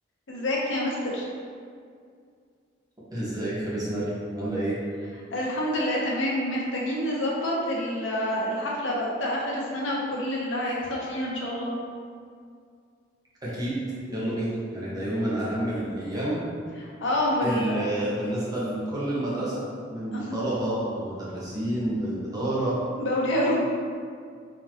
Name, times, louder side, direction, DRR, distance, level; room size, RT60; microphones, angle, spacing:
voice 1, 0.3-1.2 5.3-11.7 14.9-15.2 16.8-17.9 20.1-20.4 23.0-23.6, left 1 dB, 80° left, -4 dB, 0.8 m, -27 dB
voice 2, 3.1-4.0 4.3-4.8 13.4-13.8 14.1-16.4 17.4-19.6 19.9-22.8, right 1 dB, 20° right, -8 dB, 1.1 m, -29 dB
4.2 x 2.9 x 2.9 m, 2.2 s
head